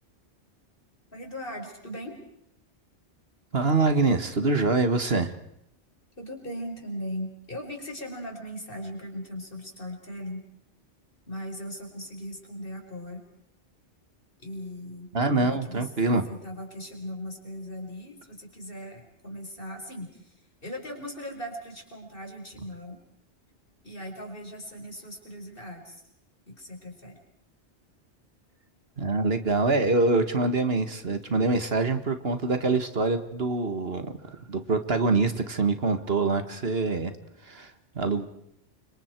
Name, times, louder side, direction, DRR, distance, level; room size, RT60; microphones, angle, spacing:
voice 1, 1.1-2.2 6.2-10.4 11.3-13.2 14.4-15.1 15.3-15.9 16.3-20.3 20.6-23.0 23.8-26.0 26.5-27.2, equal, 55° left, 2 dB, 5.5 m, -38 dB
voice 2, 3.5-5.3 15.1-16.3 29.0-37.1 37.4-38.3, right 3 dB, 60° right, 9 dB, 1.9 m, -25 dB
29.5 x 26.0 x 4.6 m, 0.77 s
omnidirectional pair, 1.1 m